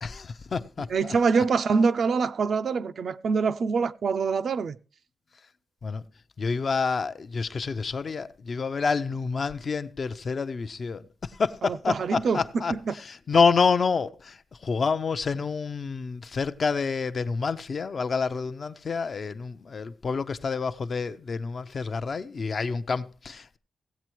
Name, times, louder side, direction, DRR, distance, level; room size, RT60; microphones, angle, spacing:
voice 1, 0.0-1.4 5.8-6.0 6.4-23.6, left 5 dB, 40° left, 0.5 m, -28 dB
voice 2, 0.9-4.8 11.6-12.4 12.9-13.0, right 5 dB, 55° right, 0.4 m, -25 dB
16.5 x 8.3 x 3.0 m
wide cardioid pair, 180°, 0 cm